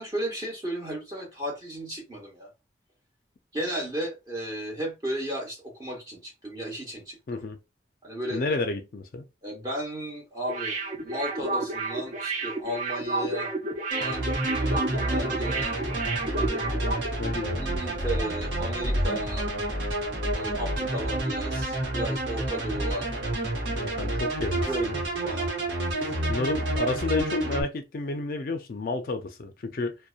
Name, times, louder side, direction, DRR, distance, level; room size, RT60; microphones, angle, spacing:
voice 1, 0.0-2.5 3.5-7.4 8.0-8.4 9.4-10.8 11.0-13.5 13.9-15.7 16.5-17.2 17.6-19.5 20.3-23.2 24.7-24.9 25.2-25.5 25.9-26.1, right 1 dB, 20° right, 1.0 m, -34 dB
voice 2, 8.3-9.3 17.2-17.7 23.7-25.0 26.3-30.0, left 3 dB, 50° left, 0.4 m, -31 dB
sound 1, 10.5-17.1 17.4-17.5, right 3 dB, 40° right, 0.5 m, -31 dB
sound 2, 13.9-27.6, right 1 dB, 80° right, 0.9 m, -29 dB
2.7 x 2.1 x 2.4 m
head